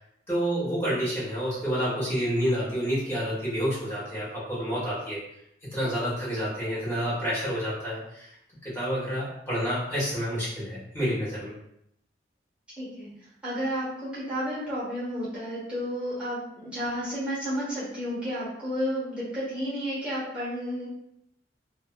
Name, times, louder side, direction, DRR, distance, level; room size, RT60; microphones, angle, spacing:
voice 1, 0.3-5.2 5.6-8.3 8.6-11.5, equal, 15° left, -9 dB, 1.3 m, -29 dB
voice 2, 12.8-13.1 13.4-20.9, equal, 5° right, -10 dB, 1.1 m, -31 dB
2.6 x 2.5 x 2.4 m, 0.76 s
head